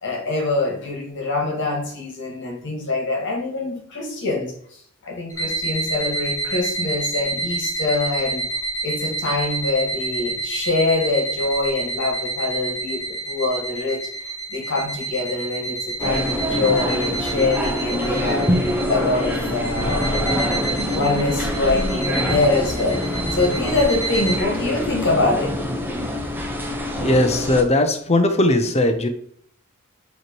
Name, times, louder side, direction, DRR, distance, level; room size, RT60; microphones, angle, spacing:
voice 1, 0.0-4.5 5.0-8.5 8.8-14.0 14.5-25.5, left 3 dB, 55° left, 0 dB, 1.7 m, -24 dB
sound 1, 5.3-24.4, right 3 dB, 15° left, 1.6 m, -29 dB
sound 2, 16.0-27.6, left 1 dB, 10° right, 0.9 m, -25 dB
voice 2, 27.0-29.1, left 1 dB, 30° left, 7 dB, 0.8 m, -18 dB
7.9 x 3.1 x 4.5 m, 0.62 s
head